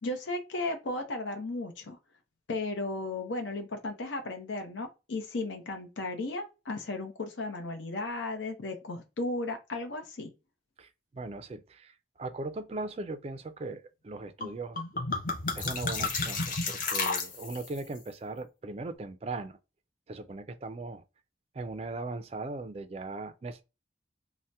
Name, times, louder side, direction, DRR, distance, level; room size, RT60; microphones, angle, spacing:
voice 1, 0.0-2.0 2.5-10.3, left 2 dB, 85° left, 0.6 m, -35 dB
voice 2, 10.8-14.8 15.6-19.6 20.1-21.0 21.5-23.6, right 3 dB, 35° right, 0.3 m, -39 dB
sound 1, 14.4-14.5 14.8-17.8, left 4 dB, 45° left, 0.6 m, -32 dB
2.8 x 2.0 x 3.3 m
head